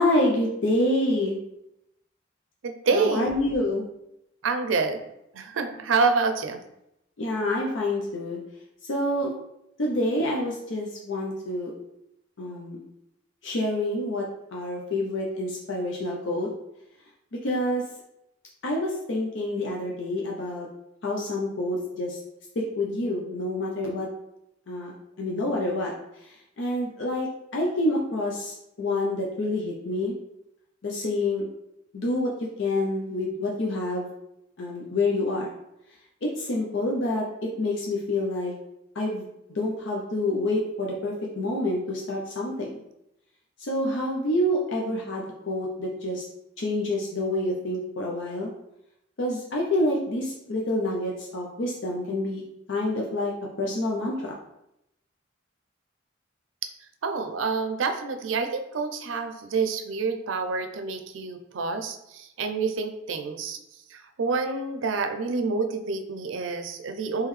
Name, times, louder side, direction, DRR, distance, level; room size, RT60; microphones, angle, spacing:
voice 1, 0.0-1.4 2.9-3.8 7.2-8.4 8.9-9.3 9.8-11.7 12.4-12.8 13.4-16.5 17.4-17.8 18.6-20.7 21.0-22.2 22.6-24.1 24.7-24.9 25.2-25.9 26.6-30.2 30.8-31.4 31.9-32.3 32.6-34.1 34.6-35.5 36.2-37.3 37.6-38.5 39.0-39.3 39.5-42.8 43.7-46.2 46.6-48.5 49.2-52.4 52.7-53.3 53.6-54.3, left 1 dB, 70° left, -2 dB, 0.6 m, -27 dB
voice 2, 2.6-3.3 4.4-5.0 5.3-6.6 57.0-63.6 63.9-67.3, right 4 dB, 85° right, 7 dB, 0.5 m, -27 dB
3.7 x 3.1 x 3.1 m, 0.83 s
head